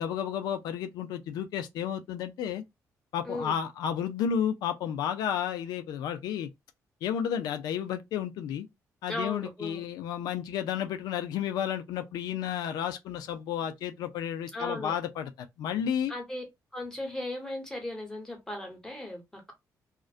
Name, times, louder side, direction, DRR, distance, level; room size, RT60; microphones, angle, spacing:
voice 1, 0.0-2.6 3.1-6.5 7.0-8.7 9.0-15.3 15.6-16.1, left 9 dB, 90° left, 0.4 m, -32 dB
voice 2, 3.2-3.6 9.1-9.8 14.5-14.9 16.1-16.4 16.7-19.5, left 1 dB, 10° left, 1.1 m, -37 dB
2.4 x 2.1 x 2.4 m
cardioid pair, 105°, 7 cm